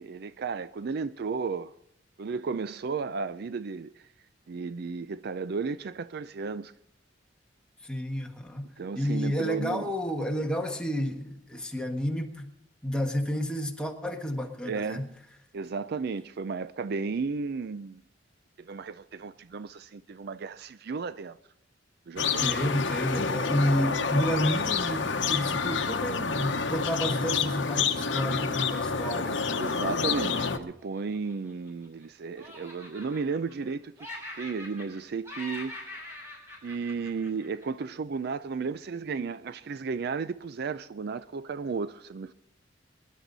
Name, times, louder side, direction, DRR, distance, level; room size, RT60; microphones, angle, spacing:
voice 1, 0.0-1.7 2.2-3.9 4.5-6.7 8.8-9.9 14.6-15.1 15.5-18.0 18.6-21.4 22.1-22.5 29.6-33.9 34.4-35.8 36.6-42.3, right 5 dB, 55° right, 0.4 m, -34 dB
voice 2, 7.8-8.7 8.9-12.5 12.8-15.1 22.4-29.7, equal, 5° left, 1.4 m, -30 dB
sound 1, 22.2-30.6, left 5 dB, 70° left, 1.0 m, -28 dB
Laughter, 30.8-32.0 32.4-33.7 34.0-35.0 35.2-37.8, left 1 dB, 15° right, 6.2 m, -43 dB
23.0 x 11.0 x 4.0 m
head